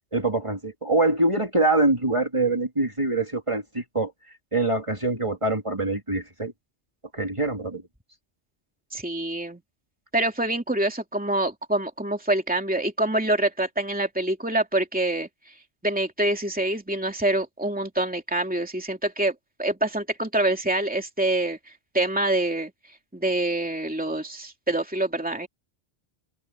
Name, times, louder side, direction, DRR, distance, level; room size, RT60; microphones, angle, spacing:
voice 1, 0.1-4.1 4.5-6.5 7.1-7.8, right 2 dB, 30° right, 2.9 m, -24 dB
voice 2, 8.9-9.6 10.1-15.3 15.8-19.3 19.6-21.6 21.9-22.7 23.1-25.5, right 1 dB, 10° right, 2.8 m, -25 dB
open air
omnidirectional pair, 1.1 m